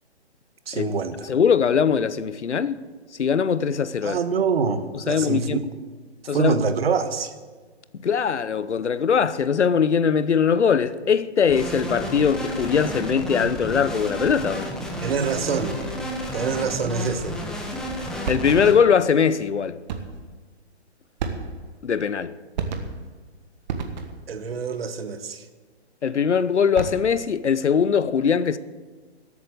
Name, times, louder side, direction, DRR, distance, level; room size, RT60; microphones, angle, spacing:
voice 1, 0.7-1.3 4.0-5.6 6.3-7.3 15.0-15.8 16.3-17.4 24.3-25.4, right 5 dB, 60° right, 1.3 m, -25 dB
voice 2, 1.2-2.8 3.1-4.2 4.9-5.6 6.3-6.6 8.0-14.7 18.3-19.8 21.8-22.3 26.0-28.6, left 6 dB, 90° left, 0.8 m, -21 dB
sound 1, 11.5-18.7, equal, ahead, 1.0 m, -31 dB
sound 2, 18.2-18.9 19.9-20.3 21.2-21.8 22.5-23.2 23.7-24.3 26.6-27.2, right 5 dB, 40° right, 1.5 m, -31 dB
13.0 x 8.5 x 7.9 m
hypercardioid pair, 145°, 34 cm